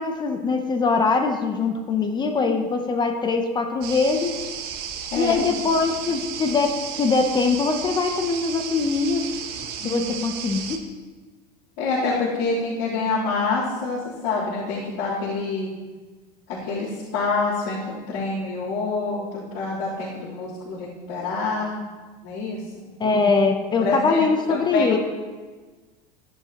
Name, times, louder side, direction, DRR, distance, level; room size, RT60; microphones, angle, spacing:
voice 1, 0.0-4.3 5.2-9.2 9.8-10.8 23.0-25.0, left 4 dB, 20° left, 5 dB, 0.8 m, -22 dB
sound 1, 3.8-10.8, right 8 dB, 50° right, 1.1 m, -33 dB
voice 2, 5.1-5.5 9.8-10.2 11.8-15.7 16.5-21.8 22.2-22.6 23.8-24.2 24.5-24.9, left 3 dB, 75° left, -12 dB, 3.6 m, -26 dB
13.5 x 10.5 x 3.0 m, 1.3 s
supercardioid pair, 140°, 20 cm